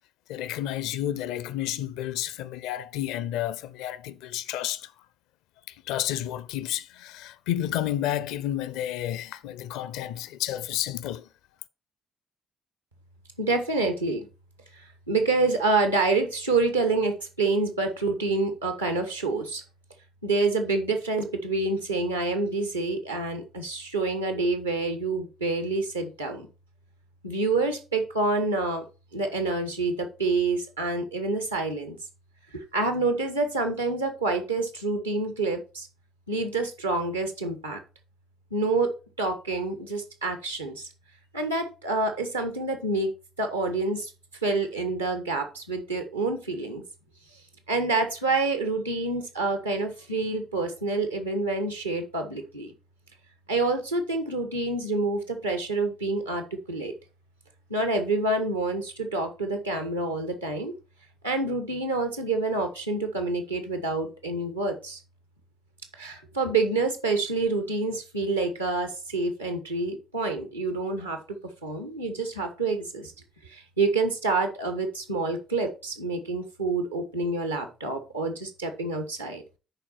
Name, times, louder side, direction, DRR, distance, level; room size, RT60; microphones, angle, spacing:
voice 1, 0.3-4.9 5.7-11.3, left 12 dB, 65° left, 0.5 m, -31 dB
voice 2, 13.4-14.3 14.8-19.6 20.2-26.5 27.2-28.8 29.1-32.0 32.5-35.9 36.3-37.8 38.5-38.9 39.2-40.9 41.3-43.1 43.4-44.1 44.4-46.8 47.7-52.7 53.5-56.9 57.7-60.7 61.2-65.0 66.0-71.4 71.6-73.1 73.5-79.4, right 3 dB, 85° right, 1.1 m, -27 dB
10.5 x 4.5 x 4.3 m
figure-of-eight pair, 45°, 0 cm